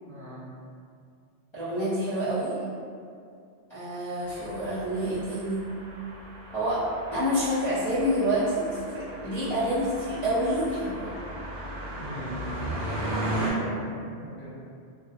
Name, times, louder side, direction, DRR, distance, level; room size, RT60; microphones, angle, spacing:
voice 1, 0.0-0.5 12.0-14.5, equal, 40° right, -13 dB, 0.7 m, -40 dB
voice 2, 1.5-2.6 3.7-5.6 6.5-6.8 7.1-11.1, equal, 30° left, -15 dB, 0.5 m, -28 dB
sound 1, 4.2-13.5, right 1 dB, 80° right, 1.0 m, -36 dB
2.5 x 2.0 x 2.5 m, 2.3 s
omnidirectional pair, 1.2 m